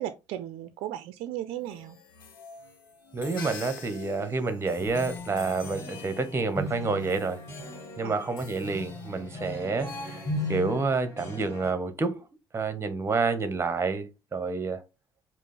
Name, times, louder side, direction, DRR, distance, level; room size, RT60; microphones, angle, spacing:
voice 1, 0.0-2.0 8.0-8.2, right 12 dB, 65° right, 0.4 m, -35 dB
sound 1, 1.5-11.0, left 6 dB, 90° left, 0.8 m, -47 dB
voice 2, 3.1-7.4 8.0-10.2 10.5-12.2 12.5-14.8, right 4 dB, 25° right, 0.9 m, -29 dB
sound 2, 4.8-11.7, left 2 dB, 25° left, 1.9 m, -37 dB
5.0 x 2.0 x 4.0 m
hypercardioid pair, 60°, 11 cm